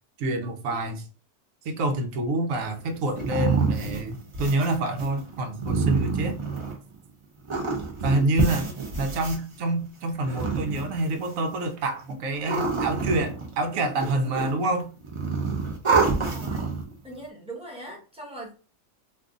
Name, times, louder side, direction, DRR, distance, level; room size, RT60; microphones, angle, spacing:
voice 1, 0.2-1.1 1.6-6.4 8.0-8.7 9.0-14.9, right 2 dB, 85° right, 1.1 m, -27 dB
sound 1, 2.6-7.0 7.4-9.4 10.1-11.3 12.1-13.7 14.0-14.7 15.0-16.9, right 4 dB, 35° right, 0.5 m, -27 dB
voice 2, 15.9-16.7 17.0-18.5, right 1 dB, 5° right, 0.9 m, -41 dB
2.6 x 2.5 x 3.6 m
omnidirectional pair, 1.4 m